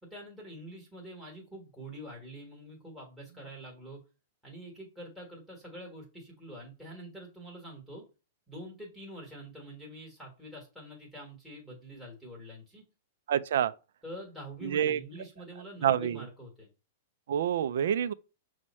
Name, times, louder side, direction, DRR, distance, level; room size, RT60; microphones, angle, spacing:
voice 1, 0.0-4.0 4.4-8.0 8.5-12.8 14.0-16.7, right 1 dB, ahead, 1.3 m, -46 dB
voice 2, 13.3-13.7 14.6-15.0 15.8-16.3 17.3-18.1, right 9 dB, 70° right, 0.3 m, -27 dB
6.1 x 2.1 x 4.1 m
supercardioid pair, 165°, 0 cm